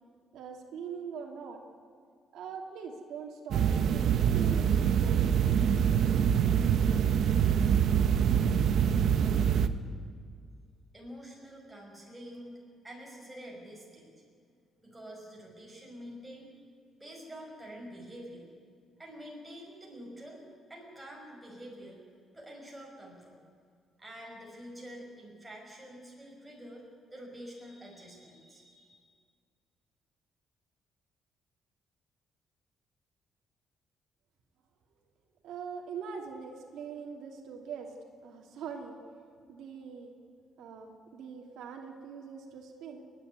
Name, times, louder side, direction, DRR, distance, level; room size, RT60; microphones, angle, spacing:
voice 1, 0.3-1.6 2.3-5.9 35.4-37.9 38.2-38.9 39.5-40.1 40.6-43.1, right 6 dB, 80° right, 2 dB, 2.8 m, -42 dB
sound 1, 3.5-9.7, right 8 dB, 55° right, 1.0 m, -25 dB
voice 2, 10.9-12.6 12.8-14.1 14.8-16.5 17.0-18.5 19.0-20.4 20.7-22.0 22.3-23.4 24.0-26.8 27.1-29.0, equal, 5° right, -2 dB, 5.5 m, -47 dB
30.0 x 11.0 x 9.6 m, 2.1 s
cardioid pair, 165°, 0 cm